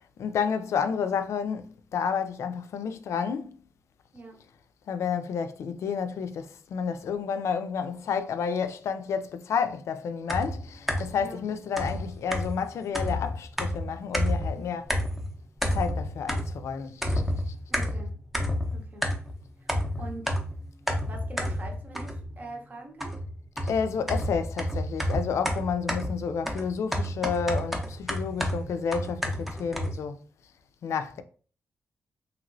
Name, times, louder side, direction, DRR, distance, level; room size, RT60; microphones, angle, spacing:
voice 1, 0.2-3.6 4.9-14.9 15.7-17.1 17.5-17.6 23.6-30.2 30.8-31.2, left 6 dB, 80° left, 0.3 m, -30 dB
sound 1, 10.3-11.2 11.8-14.6 14.9-15.3 15.6-16.7 17.0-19.4 19.7-22.4 23.0-30.0, equal, 5° right, 0.6 m, -30 dB
voice 2, 17.7-18.1 18.7-19.1 19.6-20.4 21.0-23.2, right 2 dB, 35° right, 0.8 m, -43 dB
3.0 x 2.9 x 2.5 m
wide cardioid pair, 115°, 5 cm